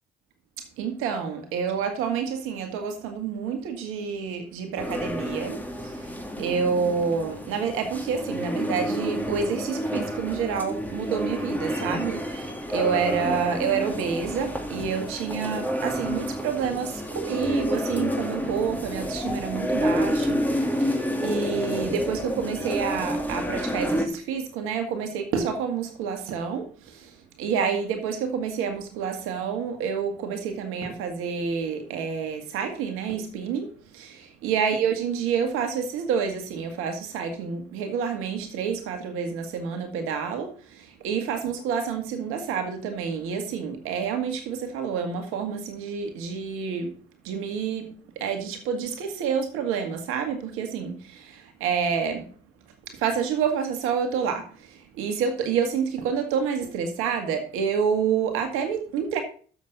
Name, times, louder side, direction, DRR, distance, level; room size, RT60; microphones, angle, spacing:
voice 1, 0.8-46.9 47.2-52.3 52.8-59.2, right 6 dB, 85° right, 1.7 m, -28 dB
sound 1, 4.8-24.1, equal, 10° left, 2.4 m, -29 dB
7.2 x 6.3 x 6.6 m
supercardioid pair, 50°, 21 cm